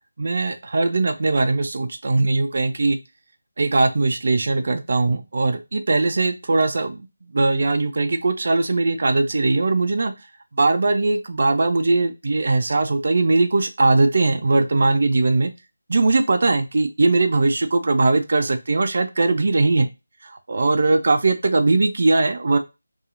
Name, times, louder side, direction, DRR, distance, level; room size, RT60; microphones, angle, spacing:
voice 1, 0.2-3.0 3.6-7.1 7.3-10.1 10.6-15.5 15.9-19.9 20.2-22.6, right 3 dB, 55° right, 7 dB, 0.4 m, -20 dB
2.8 x 2.3 x 2.4 m, 0.25 s
figure-of-eight pair, 165°, 0 cm